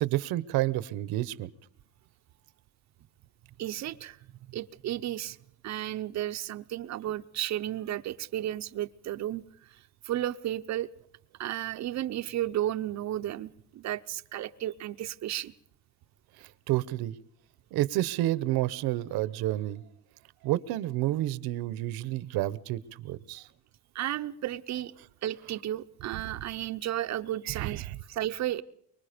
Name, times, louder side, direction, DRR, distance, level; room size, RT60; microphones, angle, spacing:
voice 1, 0.0-1.5 16.4-17.2 17.7-19.8 20.4-23.5 27.5-28.0, right 15 dB, 80° right, 18 dB, 1.1 m, -30 dB
voice 2, 3.6-5.4 5.6-10.9 11.4-15.5 23.9-24.9 25.2-28.6, right 13 dB, 50° right, 10 dB, 0.8 m, -33 dB
24.5 x 23.0 x 5.1 m, 0.66 s
cardioid pair, 165°, 36 cm